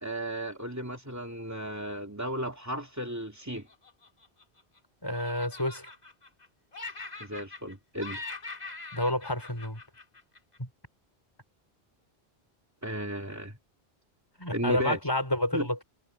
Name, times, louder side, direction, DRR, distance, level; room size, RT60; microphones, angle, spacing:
voice 1, 0.0-3.7 7.2-8.2 12.8-13.5 14.5-15.0 15.5-15.7, right 1 dB, 15° right, 2.6 m, -34 dB
Laughter, 3.5-4.8 5.1-6.5 6.7-7.7 8.0-10.6, left 3 dB, 40° left, 2.2 m, -43 dB
voice 2, 5.0-5.9 8.9-9.8 10.6-10.7 14.4-15.8, left 1 dB, 20° left, 4.9 m, -29 dB
omnidirectional pair, 1.0 m